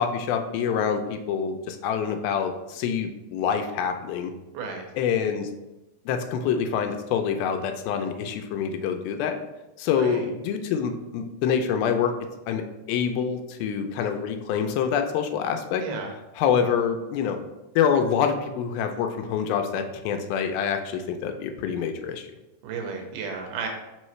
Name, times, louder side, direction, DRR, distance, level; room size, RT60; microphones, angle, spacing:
voice 1, 0.0-4.3 5.0-5.5 6.1-9.4 9.8-12.1 12.5-15.8 16.4-17.4 17.8-22.3, left 7 dB, 85° left, 6 dB, 2.4 m, -26 dB
voice 2, 4.5-4.9 10.0-10.3 15.8-16.1 22.6-23.7, right 5 dB, 75° right, 2 dB, 2.2 m, -33 dB
5.6 x 5.4 x 3.1 m, 1.0 s
omnidirectional pair, 4.2 m